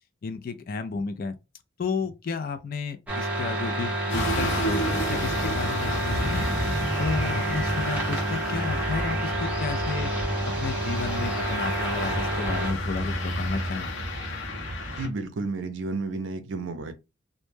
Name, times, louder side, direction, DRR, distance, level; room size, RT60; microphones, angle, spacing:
voice 1, 0.2-1.4 1.8-6.5 7.0-10.1 10.6-13.9, left 5 dB, 45° left, 0.3 m, -32 dB
sound 1, 3.1-12.7, right 1 dB, 5° right, 0.6 m, -29 dB
sound 2, 4.1-15.1, equal, 70° left, 0.7 m, -31 dB
voice 2, 15.0-16.9, right 3 dB, 65° right, 0.5 m, -31 dB
2.1 x 2.1 x 3.1 m
head